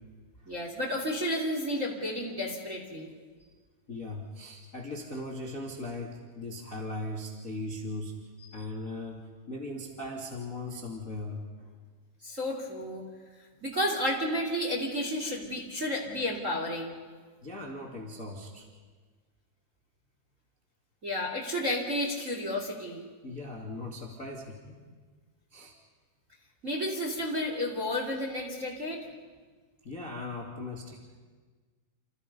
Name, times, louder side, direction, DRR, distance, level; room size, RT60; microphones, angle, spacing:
voice 1, 0.5-3.1 12.2-13.0 13.6-16.9 21.0-23.0 26.6-29.0, left 1 dB, 20° right, 0 dB, 2.3 m, -31 dB
voice 2, 3.9-8.1 8.5-11.7 17.4-18.6 23.2-24.7 25.5-25.7 29.8-31.0, left 2 dB, 30° left, -1 dB, 1.6 m, -39 dB
29.0 x 28.5 x 5.4 m, 1.4 s
omnidirectional pair, 5.8 m